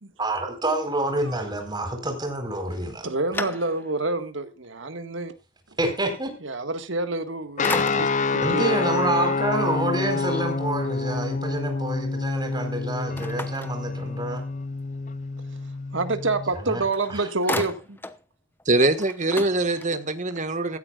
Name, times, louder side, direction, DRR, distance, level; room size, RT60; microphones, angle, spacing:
voice 1, 0.2-3.1 5.8-6.3 8.4-14.4 16.6-16.8 17.1-17.2, right 1 dB, 20° right, 4.4 m, -27 dB
sound 1, 2.7-4.1 4.6-4.7 7.0-7.3 7.6-8.4 13.2-14.4 16.5-16.6 16.9-18.2 18.6-18.7 18.9-20.2, left 2 dB, 10° left, 0.9 m, -34 dB
voice 2, 3.0-5.3 6.4-8.8 15.9-18.0 20.3-20.4, right 3 dB, 75° right, 1.7 m, -28 dB
sound 2, 7.6-16.5, left 4 dB, 40° left, 0.6 m, -27 dB
voice 3, 18.6-20.8, right 2 dB, 40° right, 1.6 m, -23 dB
16.0 x 13.5 x 2.4 m
head